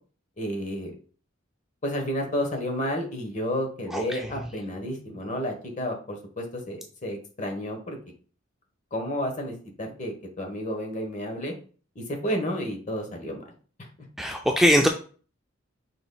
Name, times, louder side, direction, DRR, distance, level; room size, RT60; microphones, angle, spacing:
voice 1, 0.4-0.9 1.8-8.0 8.9-11.5 11.9-13.4 13.8-13.9, equal, 40° left, 3 dB, 1.2 m, -31 dB
voice 2, 14.2-14.9, equal, ahead, 3 dB, 0.3 m, -20 dB
6.0 x 3.9 x 2.3 m, 0.40 s
head